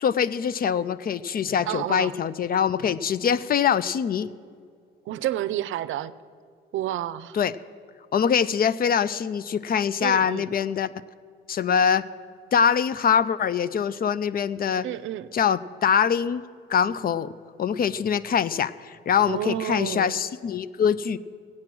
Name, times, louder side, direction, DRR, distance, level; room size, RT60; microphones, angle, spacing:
voice 1, 0.0-4.3 7.3-7.5 8.1-10.9 11.5-12.1 12.5-14.9 15.3-16.4 16.7-17.3 17.6-21.2, left 7 dB, 50° left, 16 dB, 0.6 m, -23 dB
voice 2, 1.7-2.2 5.1-6.1 6.7-7.4 10.0-10.5 14.8-15.3 19.3-20.2, right 13 dB, 80° right, 15 dB, 0.5 m, -30 dB
16.5 x 8.7 x 6.1 m, 2.1 s
cardioid pair, 90°, 20 cm